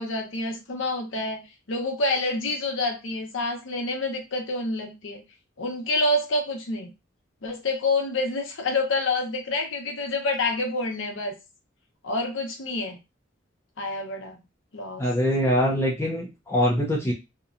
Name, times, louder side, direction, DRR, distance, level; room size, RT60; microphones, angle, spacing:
voice 1, 0.0-1.4 1.7-5.2 5.6-6.9 7.4-11.3 12.0-13.0 13.8-14.4 14.7-15.1, left 2 dB, 80° left, 2 dB, 0.7 m, -27 dB
voice 2, 15.0-17.1, equal, 15° left, -3 dB, 0.5 m, -23 dB
2.8 x 2.2 x 2.4 m, 0.26 s
head